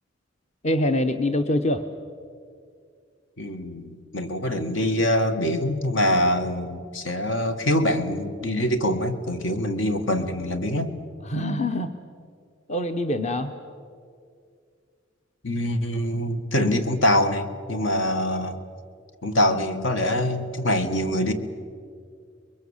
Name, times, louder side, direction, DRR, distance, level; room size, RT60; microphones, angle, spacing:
voice 1, 0.6-1.9 11.2-11.9 12.7-13.5, left 1 dB, 35° left, 7 dB, 0.9 m, -24 dB
voice 2, 3.4-10.9 15.4-18.6 19.2-21.3, left 1 dB, 70° left, 7 dB, 1.8 m, -24 dB
29.5 x 22.5 x 7.3 m, 2.2 s
head